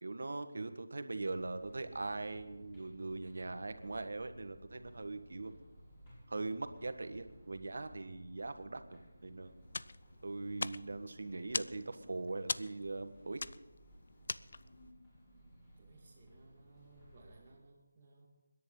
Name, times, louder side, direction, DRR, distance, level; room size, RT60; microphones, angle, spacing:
voice 1, 0.0-5.5 6.3-9.5 10.2-13.4, right 3 dB, 65° right, 9 dB, 1.4 m, -41 dB
sound 1, 1.2-17.5, equal, 15° left, 6.1 m, -58 dB
sound 2, 9.7-14.9, left 3 dB, 55° left, 0.4 m, -42 dB
voice 2, 15.7-18.3, right 3 dB, 20° right, -7 dB, 2.3 m, -62 dB
29.5 x 10.5 x 3.9 m, 1.1 s
figure-of-eight pair, 170°, 0 cm